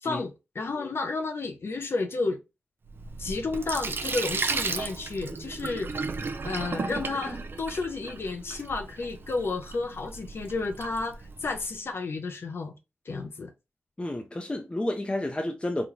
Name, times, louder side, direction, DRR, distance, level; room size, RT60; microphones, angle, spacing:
voice 1, 0.0-2.4 3.2-5.9 6.4-12.7 13.1-13.5, left 3 dB, 65° left, 0.6 m, -32 dB
Sink (filling or washing), 2.9-11.7, right 4 dB, 55° right, 0.4 m, -35 dB
voice 2, 14.0-15.9, left 1 dB, 25° left, 0.7 m, -30 dB
4.0 x 2.3 x 3.0 m
cardioid pair, 40°, 4 cm